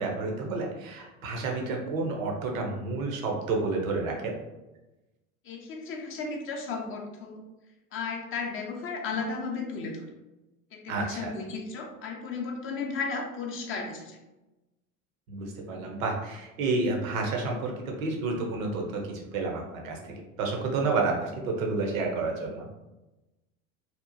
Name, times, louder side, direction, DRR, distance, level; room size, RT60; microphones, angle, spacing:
voice 1, 0.0-4.3 10.9-11.3 15.3-20.0 20.4-22.7, right 3 dB, 75° right, 1 dB, 0.7 m, -30 dB
voice 2, 5.4-7.4 7.9-10.1 10.7-14.2, left 4 dB, 30° left, 1 dB, 0.4 m, -34 dB
2.8 x 2.1 x 2.5 m, 1.0 s
hypercardioid pair, 75°, 42 cm